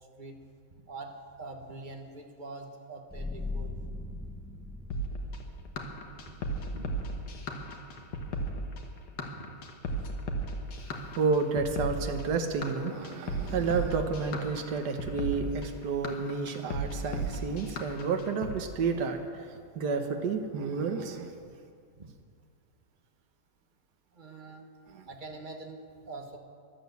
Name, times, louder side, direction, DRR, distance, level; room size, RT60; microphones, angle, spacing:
voice 1, 1.4-3.7 6.3-6.4 6.7-6.9 9.4-9.5 22.0-22.1 24.1-24.6 25.1-25.8 26.1-26.4, right 3 dB, 30° right, 3 dB, 1.4 m, -44 dB
sound 1, 3.1-14.3, left 2 dB, 5° left, 0.8 m, -44 dB
sound 2, 4.9-18.6, right 1 dB, 75° left, 2.0 m, -35 dB
voice 2, 11.2-21.3 24.9-25.1, right 5 dB, 65° right, 5 dB, 1.7 m, -31 dB
12.5 x 11.5 x 8.1 m, 2.2 s
omnidirectional pair, 1.9 m